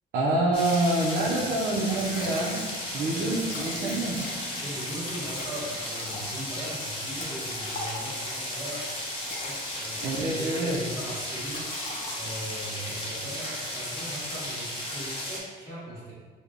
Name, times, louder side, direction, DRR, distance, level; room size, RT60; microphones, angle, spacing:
voice 1, 0.1-2.6 2.9-4.2 10.0-10.8, right 2 dB, 65° right, -5 dB, 0.6 m, -26 dB
sound 1, 0.5-15.4, left 1 dB, 30° left, 0.9 m, -34 dB
Liquid, 1.5-1.6 1.9-2.8 3.1-3.2 3.4-4.6 5.3-8.3 9.0-10.5 10.8-11.1 11.5-12.5, left 2 dB, 50° left, 0.6 m, -42 dB
voice 2, 2.9-3.6 4.4-8.9 9.4-11.9 12.1-16.1, right 1 dB, 15° right, -9 dB, 1.3 m, -39 dB
3.6 x 2.1 x 3.5 m, 1.5 s
cardioid pair, 110°, 17 cm